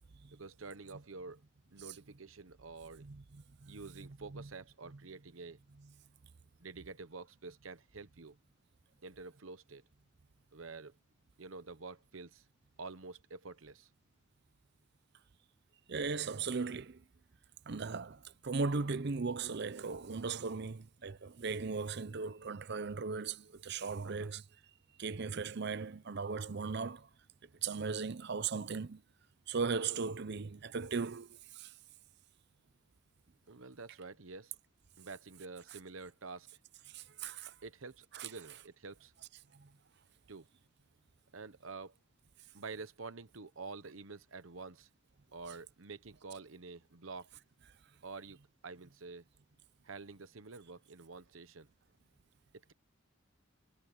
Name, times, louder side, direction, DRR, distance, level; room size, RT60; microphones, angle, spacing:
voice 1, 0.3-1.4 1.7-3.1 3.7-5.6 6.6-8.4 9.0-9.8 10.5-10.9 11.4-12.4 12.8-13.9 24.0-24.3 33.5-34.5 35.0-36.5 37.5-39.1 40.3-40.5 41.3-42.0 42.5-44.9 45.3-47.3 48.0-48.4 48.6-49.2 49.8-51.7, right 4 dB, 75° right, 1.0 m, -48 dB
voice 2, 15.9-17.0 17.7-24.4 25.0-27.1 27.6-29.0 29.5-31.3 31.5-31.7 36.9-37.5 38.1-38.3, right 4 dB, 55° right, 0.6 m, -37 dB
head